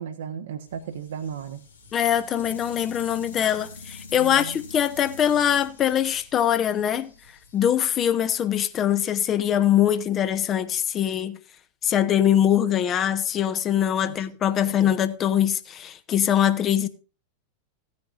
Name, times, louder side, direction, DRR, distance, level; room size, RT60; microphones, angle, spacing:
voice 1, 0.0-1.6 4.1-4.6 14.0-14.1 14.6-14.9, right 8 dB, 60° right, 1.0 m, -35 dB
sound 1, 0.7-8.8, left 3 dB, 70° left, 1.7 m, -46 dB
voice 2, 1.9-7.1 7.5-11.4 11.8-16.9, left 10 dB, 30° left, 1.0 m, -22 dB
16.5 x 9.7 x 2.5 m
figure-of-eight pair, 90°, 0 cm